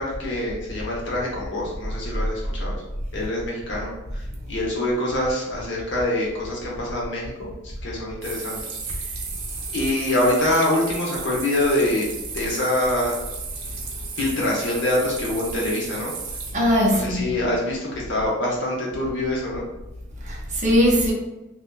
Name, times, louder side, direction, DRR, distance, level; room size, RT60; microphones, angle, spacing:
voice 1, 0.0-2.8 3.1-4.2 4.5-8.6 9.7-12.1 12.3-13.1 14.2-16.1 16.9-19.6, left 1 dB, 65° left, 0.8 m, -25 dB
sound 1, 8.2-16.5, right 5 dB, 85° right, 0.5 m, -34 dB
voice 2, 16.5-17.3 20.2-21.1, equal, 40° right, 0.6 m, -20 dB
2.6 x 2.2 x 2.3 m
head